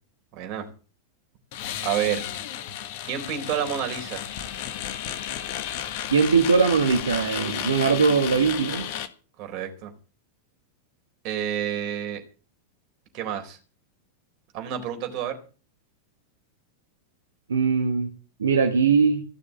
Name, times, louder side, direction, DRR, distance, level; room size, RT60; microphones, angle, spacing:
voice 1, 0.3-0.7 1.8-2.3 3.0-4.3 9.4-9.9 11.2-12.2 13.1-13.6 14.5-15.4, right 9 dB, 40° right, 4 dB, 4.0 m, -29 dB
sound 1, 1.5-9.1, left 10 dB, 50° left, 1.6 m, -33 dB
voice 2, 6.1-8.9 17.5-18.1 18.4-19.2, right 5 dB, 70° right, 4 dB, 1.7 m, -21 dB
16.0 x 6.7 x 9.3 m, 0.36 s
figure-of-eight pair, 90°, 0 cm